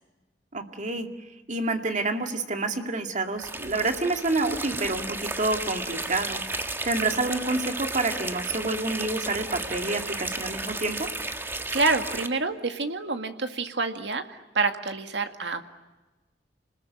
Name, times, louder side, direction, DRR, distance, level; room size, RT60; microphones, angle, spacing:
voice 1, 0.5-1.1 1.5-11.1, right 2 dB, 45° right, 5 dB, 2.3 m, -28 dB
sound 1, 3.4-12.3, right 2 dB, 15° right, 1.3 m, -33 dB
voice 2, 11.7-15.6, right 3 dB, 85° right, 7 dB, 2.0 m, -27 dB
29.0 x 20.5 x 9.4 m, 1.2 s
head